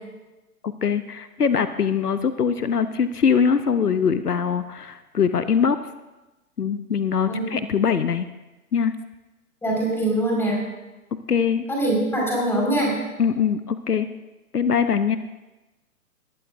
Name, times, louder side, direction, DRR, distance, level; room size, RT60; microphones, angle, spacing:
voice 1, 0.6-5.8 6.6-8.3 8.7-8.9 11.3-11.7 13.2-14.1 14.5-15.2, left 6 dB, 80° left, 12 dB, 0.8 m, -22 dB
voice 2, 9.6-10.6 11.7-13.0, right 1 dB, 5° left, -3 dB, 4.8 m, -23 dB
20.0 x 15.0 x 2.6 m, 1.1 s
figure-of-eight pair, 120°, 46 cm